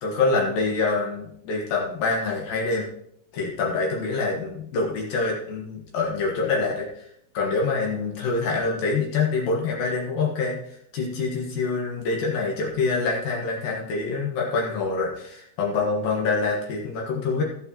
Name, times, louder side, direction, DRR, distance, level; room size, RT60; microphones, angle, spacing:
voice 1, 0.0-2.9 3.3-7.1 7.3-17.4, left 4 dB, 65° left, -2 dB, 2.5 m, -26 dB
16.5 x 7.8 x 3.0 m, 0.71 s
omnidirectional pair, 5.7 m